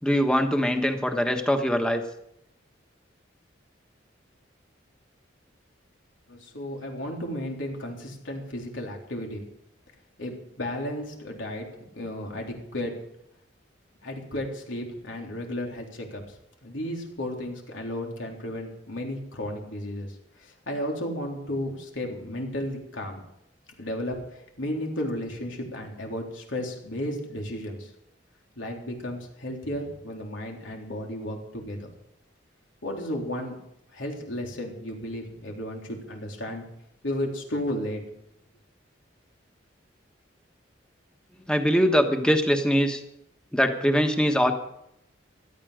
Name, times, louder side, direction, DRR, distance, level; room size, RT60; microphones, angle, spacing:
voice 1, 0.0-2.0 41.5-43.0 43.5-44.5, equal, 5° left, 5 dB, 1.3 m, -22 dB
voice 2, 6.3-9.4 10.2-11.7 11.9-12.9 14.0-16.2 16.6-23.2 23.8-27.9 28.6-31.9 32.8-33.5 33.9-36.6 37.0-38.0, left 1 dB, 90° left, 1 dB, 3.7 m, -33 dB
17.0 x 13.0 x 5.1 m, 0.78 s
head